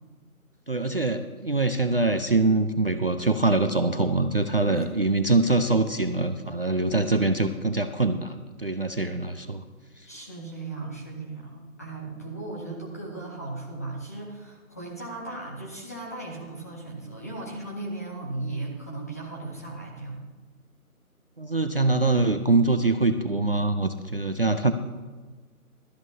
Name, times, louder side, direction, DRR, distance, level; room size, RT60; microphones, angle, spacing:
voice 1, 0.7-9.6 21.4-24.7, right 2 dB, 45° right, 8 dB, 0.5 m, -24 dB
voice 2, 10.1-20.3, right 2 dB, 10° left, -3 dB, 0.8 m, -36 dB
16.5 x 13.0 x 2.7 m, 1.3 s
figure-of-eight pair, 165°, 43 cm